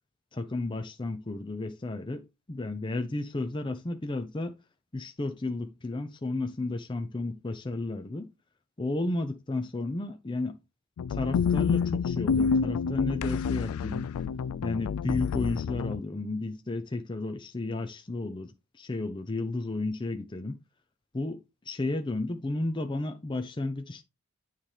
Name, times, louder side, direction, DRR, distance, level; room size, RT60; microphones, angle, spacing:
voice 1, 0.3-4.5 4.9-8.3 8.8-10.6 11.1-14.1 14.6-20.6 21.1-24.0, left 2 dB, 20° left, 0.6 m, -33 dB
sound 1, 11.0-16.0, left 6 dB, 90° left, 0.3 m, -28 dB
9.5 x 3.3 x 5.6 m
head